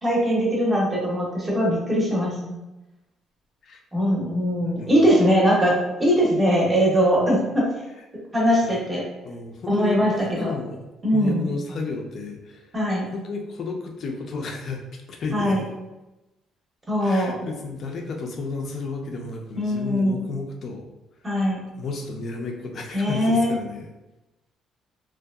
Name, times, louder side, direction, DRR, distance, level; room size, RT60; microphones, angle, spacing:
voice 1, 0.0-2.6 3.9-5.7 6.0-7.7 8.3-9.0 9.7-10.1 10.4-10.5 11.0-11.5 12.7-13.0 15.3-15.6 16.9-17.3 19.6-20.3 21.2-21.6 22.9-23.5, equal, 10° right, -4 dB, 0.7 m, -21 dB
voice 2, 4.6-5.0 8.6-8.7 9.2-10.8 11.1-12.7 13.1-14.8 15.1-15.6 17.0-20.9 21.8-23.9, left 3 dB, 40° left, 2 dB, 0.4 m, -32 dB
2.6 x 2.3 x 2.2 m, 1.0 s
cardioid pair, 165°, 0 cm